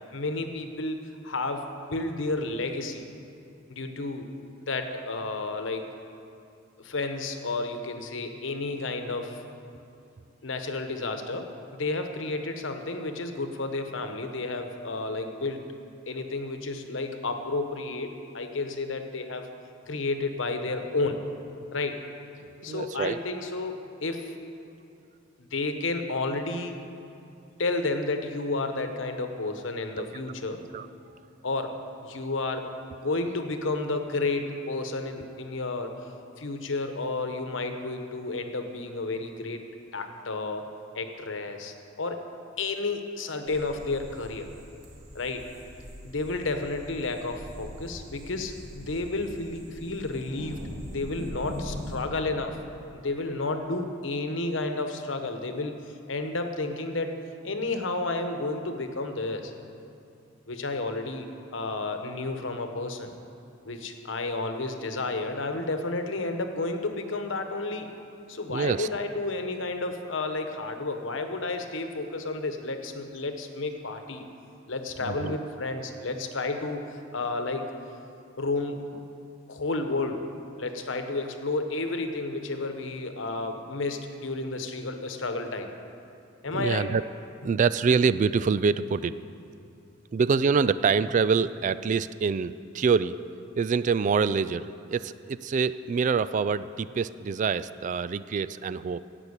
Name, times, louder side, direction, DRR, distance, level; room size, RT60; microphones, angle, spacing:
voice 1, 0.1-3.0 3.7-4.3 4.7-5.9 6.8-9.4 10.4-15.6 16.1-19.5 19.9-21.2 21.7-22.0 22.6-24.3 25.4-26.8 27.6-30.6 31.4-32.7 32.9-35.9 36.4-39.6 39.9-40.7 40.9-42.2 42.6-44.5 45.1-45.5 46.0-50.7 50.9-52.6 52.9-55.8 56.1-57.1 57.4-59.5 60.5-63.1 63.6-67.9 68.3-74.2 74.7-77.7 78.4-78.8 79.5-80.3 80.6-85.7 86.4-86.9, left 3 dB, 75° left, 6 dB, 1.1 m, -31 dB
voice 2, 22.7-23.2 30.0-30.1 30.7-30.9 68.5-68.9 75.1-75.4 86.5-87.0 87.4-89.2 90.1-93.2 93.6-99.0, right 5 dB, 40° right, 14 dB, 0.3 m, -25 dB
sound 1, 43.5-52.0, equal, 60° right, 1.9 m, -42 dB
16.5 x 6.0 x 8.1 m, 2.6 s
head